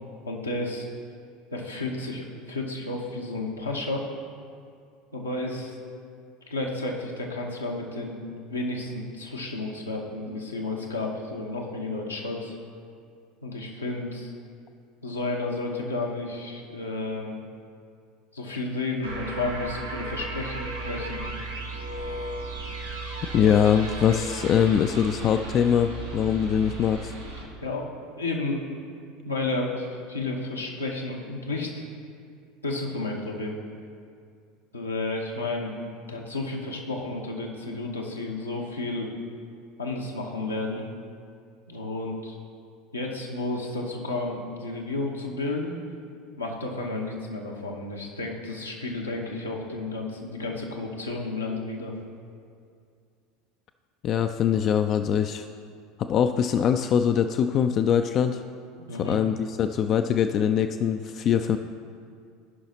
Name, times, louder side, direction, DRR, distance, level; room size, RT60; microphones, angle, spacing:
voice 1, 0.2-0.9 1.5-4.1 5.1-5.7 6.5-12.5 13.4-14.3 15.0-17.4 18.3-21.2 27.6-27.9 28.2-28.7 29.2-31.8 32.6-33.6 34.7-35.7 36.1-39.1 39.8-40.9 41.7-42.4 42.9-45.7 46.4-51.9 58.8-59.2, left 2 dB, 85° left, -1 dB, 1.0 m, -32 dB
sound 1, 19.0-27.4, right 2 dB, 90° right, 1.7 m, -35 dB
voice 2, 23.3-27.1 54.0-55.4 56.1-58.4 59.0-61.6, left 8 dB, 40° left, 8 dB, 0.3 m, -23 dB
16.0 x 5.5 x 2.9 m, 2.3 s
figure-of-eight pair, 75°, 0 cm